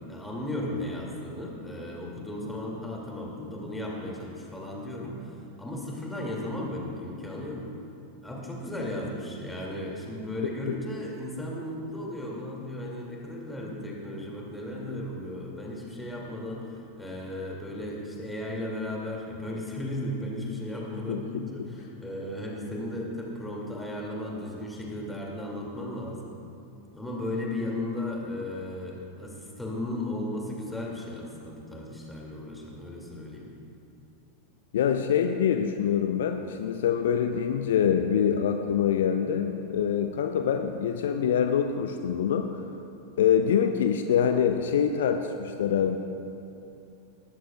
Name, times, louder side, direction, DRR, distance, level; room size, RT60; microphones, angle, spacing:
voice 1, 0.0-7.6 8.2-26.3 26.9-33.5, left 1 dB, 5° left, -2 dB, 2.4 m, -35 dB
voice 2, 21.1-21.4 34.7-42.6 43.2-46.0, left 8 dB, 60° left, 7 dB, 0.5 m, -25 dB
19.0 x 13.5 x 2.4 m, 2.7 s
figure-of-eight pair, 90°, 0 cm